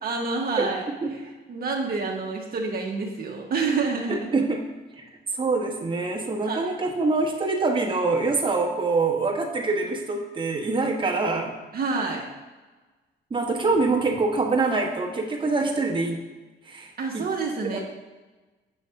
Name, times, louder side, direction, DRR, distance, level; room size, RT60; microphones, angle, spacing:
voice 1, 0.0-4.2 6.4-6.7 11.7-12.3 17.0-17.8, right 4 dB, 50° right, -1 dB, 0.9 m, -28 dB
voice 2, 4.1-4.6 5.4-11.5 13.3-16.2 16.7-17.2 17.7-17.8, right 3 dB, 25° right, 0 dB, 1.0 m, -25 dB
6.3 x 3.2 x 5.6 m, 1.2 s
cardioid pair, 90°, 20 cm